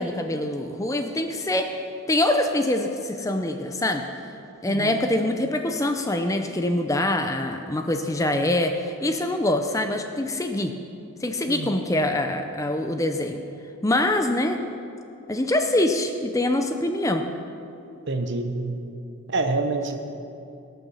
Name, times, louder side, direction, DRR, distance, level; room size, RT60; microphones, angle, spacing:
voice 1, 0.0-1.7 2.1-4.1 4.6-10.7 11.2-13.4 13.8-14.6 15.3-17.3, left 1 dB, 15° left, 6 dB, 0.5 m, -24 dB
voice 2, 4.7-5.0 11.5-11.8 18.1-18.8 19.3-20.0, right 2 dB, 50° right, 6 dB, 0.9 m, -27 dB
18.0 x 6.9 x 6.4 m, 2.7 s
head